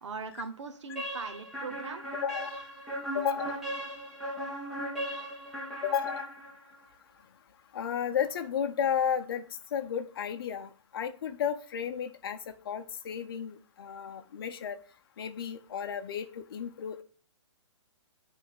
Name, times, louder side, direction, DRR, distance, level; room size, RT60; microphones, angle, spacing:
voice 1, 0.0-2.0, right 5 dB, 70° right, 6 dB, 1.0 m, -40 dB
sound 1, 1.0-6.8, equal, ahead, 1.2 m, -37 dB
voice 2, 2.1-2.6 3.1-3.6 5.8-6.3 7.7-9.4 9.7-12.4 12.7-14.8 15.2-17.0, left 8 dB, 50° left, 8 dB, 0.7 m, -33 dB
7.7 x 3.5 x 6.5 m, 0.42 s
hypercardioid pair, 165°, 16 cm